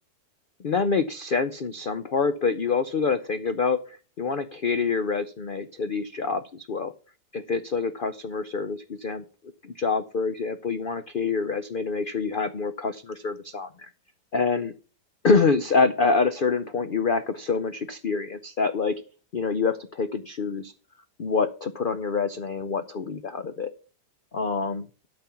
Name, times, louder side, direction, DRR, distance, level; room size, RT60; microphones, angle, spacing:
voice 1, 0.6-6.9 7.3-9.2 9.6-13.9 14.3-14.7 15.2-18.9 19.3-20.7 21.2-23.7 24.3-24.9, left 4 dB, 80° left, 10 dB, 0.4 m, -26 dB
12.5 x 5.4 x 5.7 m, 0.37 s
omnidirectional pair, 1.8 m